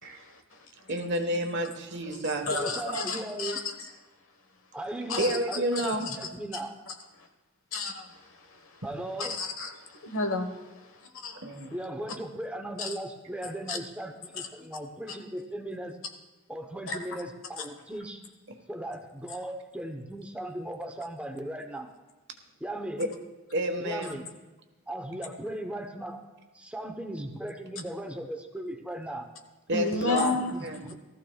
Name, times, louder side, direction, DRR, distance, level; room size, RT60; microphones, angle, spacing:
voice 1, 0.0-0.6 2.0-3.9 5.1-5.4 5.7-6.3 6.9-7.3 7.7-8.8 9.2-10.7 11.2-11.7 12.8-12.9 13.7-13.8 14.3-14.5 15.1-15.2 16.9-17.2 17.6-17.7 24.0-24.1 29.7-30.6 30.9-31.0, left 3 dB, 65° left, 5 dB, 1.3 m, -33 dB
voice 2, 0.9-2.5 5.2-6.1 11.4-11.7 18.5-18.6 23.0-23.1 23.5-24.2 29.7-30.3 30.6-30.8, right 1 dB, 50° right, 4 dB, 1.4 m, -30 dB
voice 3, 2.5-3.6 4.7-6.7 8.8-9.4 11.7-16.0 16.5-18.2 18.7-21.9 22.6-23.0 23.8-24.3 24.9-26.2 26.5-29.3 29.9-30.9, right 1 dB, 5° right, 4 dB, 0.9 m, -37 dB
18.5 x 14.0 x 2.4 m, 1.2 s
head